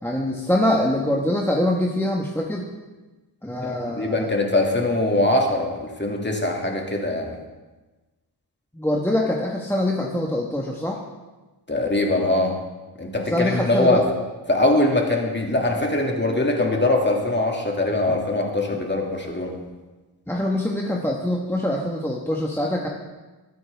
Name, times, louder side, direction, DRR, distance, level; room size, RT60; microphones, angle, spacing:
voice 1, 0.0-2.7 3.4-4.3 8.7-11.0 13.3-14.0 20.3-22.9, left 1 dB, 5° left, -1 dB, 1.3 m, -24 dB
voice 2, 4.0-7.4 11.7-12.5 13.0-14.0 14.5-19.6, left 2 dB, 25° left, 0 dB, 2.2 m, -22 dB
21.5 x 9.3 x 3.5 m, 1.2 s
wide cardioid pair, 90°, 42 cm